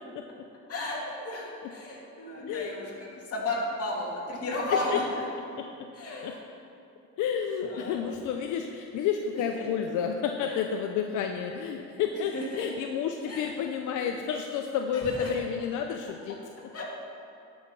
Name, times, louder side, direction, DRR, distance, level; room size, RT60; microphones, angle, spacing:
voice 1, 0.7-5.0 5.9-6.4 7.6-8.0 9.3-9.7 10.4-10.6 12.3-12.7 13.2-13.6 14.9-15.3 16.7-16.8, left 2 dB, 50° left, -3 dB, 2.6 m, -34 dB
voice 2, 2.5-2.9 4.9-5.0 5.6-5.7 6.2-6.3 7.2-16.4, left 7 dB, 85° left, 4 dB, 0.6 m, -30 dB
12.5 x 5.6 x 6.0 m, 2.6 s
cardioid pair, 90°, 30 cm